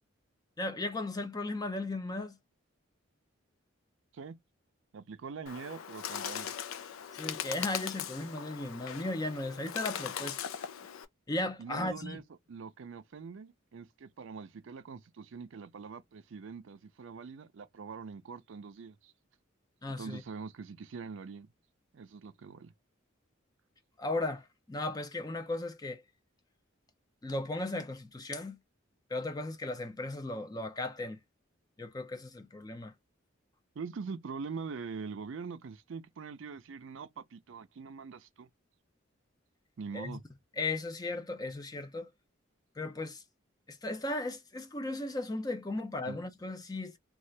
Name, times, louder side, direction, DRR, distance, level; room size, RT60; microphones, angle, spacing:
voice 1, 0.6-2.4 7.2-10.4 11.3-12.2 19.8-20.2 24.0-26.0 27.2-28.6 29.1-31.2 31.8-32.9 39.9-40.2 40.6-42.1 42.8-43.2 43.7-46.9, left 2 dB, 20° left, 0.4 m, -36 dB
voice 2, 4.9-6.5 11.6-12.2 12.5-19.1 20.0-21.5 21.9-22.7 33.8-38.5 39.8-40.2 46.0-46.2, right 5 dB, 70° right, 0.4 m, -43 dB
Bird, 5.5-11.1, left 9 dB, 90° left, 0.4 m, -39 dB
2.7 x 2.4 x 3.2 m
head